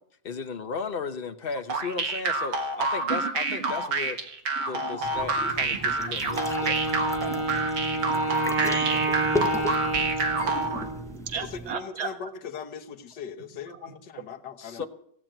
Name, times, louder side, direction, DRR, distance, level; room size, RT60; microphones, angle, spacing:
voice 1, 0.2-4.2 4.7-6.8 14.6-14.9, left 5 dB, 40° left, 8 dB, 0.9 m, -35 dB
sound 1, 1.7-10.8, right 3 dB, 75° right, 2.2 m, -28 dB
voice 2, 3.1-3.7 4.6-6.1 7.2-12.1, right 6 dB, 40° right, 7 dB, 1.5 m, -38 dB
sound 2, 5.0-11.7, left 1 dB, 5° left, 0.4 m, -36 dB
Wind instrument woodwind instrument, 6.3-11.1, right 2 dB, 15° right, 1.9 m, -29 dB
voice 3, 11.4-14.9, left 6 dB, 75° left, 6 dB, 1.7 m, -39 dB
17.5 x 7.6 x 8.9 m, 0.69 s
omnidirectional pair, 1.9 m